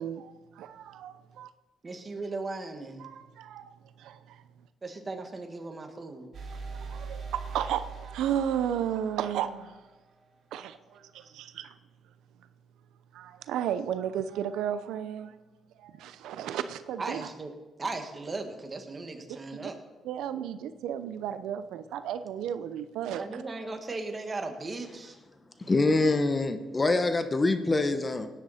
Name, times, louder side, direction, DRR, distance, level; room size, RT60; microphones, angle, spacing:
voice 1, 0.0-1.5 3.0-3.7 4.0-4.4 6.7-9.8 10.5-11.7 13.1-15.4 15.8-17.3 19.6-19.7 20.0-23.4, right 9 dB, 85° right, 12 dB, 0.6 m, -34 dB
voice 2, 1.8-3.0 4.8-6.3 17.0-19.8 23.2-25.2, right 3 dB, 30° right, 5 dB, 1.8 m, -37 dB
sound 1, 6.3-10.1, right 5 dB, 60° right, 3.0 m, -41 dB
voice 3, 25.7-28.3, left 2 dB, 25° left, 8 dB, 1.1 m, -25 dB
17.0 x 10.0 x 4.3 m, 1.2 s
cardioid pair, 90°, 0 cm